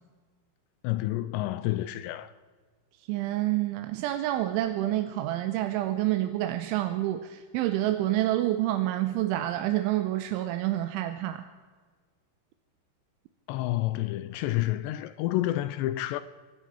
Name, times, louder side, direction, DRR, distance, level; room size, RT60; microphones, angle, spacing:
voice 1, 0.8-2.3 13.5-16.2, left 16 dB, 85° left, 2.5 m, -29 dB
voice 2, 3.1-11.4, right 14 dB, 85° right, 3.1 m, -28 dB
24.0 x 13.5 x 4.5 m
omnidirectional pair, 5.5 m